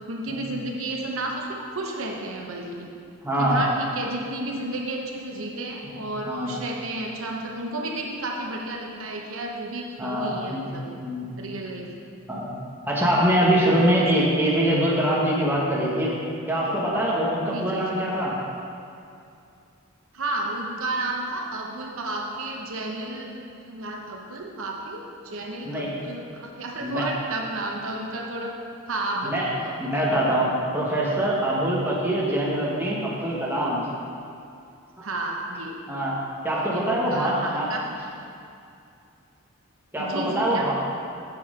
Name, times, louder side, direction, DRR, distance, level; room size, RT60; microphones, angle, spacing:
voice 1, 0.1-2.9 3.4-10.9 11.4-11.9 17.4-18.0 20.1-23.3 23.7-28.5 28.9-30.0 35.0-35.8 36.7-37.8 40.0-40.7, right 2 dB, 70° right, 0 dB, 0.8 m, -32 dB
voice 2, 3.2-3.7 5.8-6.6 10.0-10.6 11.0-11.3 12.3-12.5 12.9-16.1 16.5-18.4 25.6-25.9 26.8-27.0 29.2-29.5 29.8-33.9 35.9-37.7 39.9-40.7, right 1 dB, 10° right, -6 dB, 1.2 m, -24 dB
7.6 x 5.8 x 5.0 m, 2.5 s
head